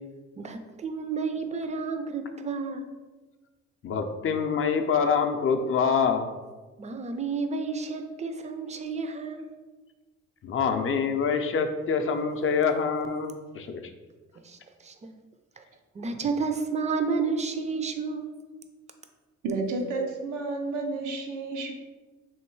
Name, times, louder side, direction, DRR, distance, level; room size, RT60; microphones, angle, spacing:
voice 1, 0.4-2.9 6.8-9.5 14.4-15.1 15.6-15.7 15.9-18.4, right 4 dB, 25° right, 6 dB, 0.4 m, -31 dB
voice 2, 3.8-6.3 10.4-13.8, left 6 dB, 45° left, 6 dB, 0.5 m, -25 dB
voice 3, 19.4-21.7, right 3 dB, 85° right, 2 dB, 0.8 m, -31 dB
3.2 x 3.0 x 4.5 m, 1.3 s
cardioid pair, 90°, 30 cm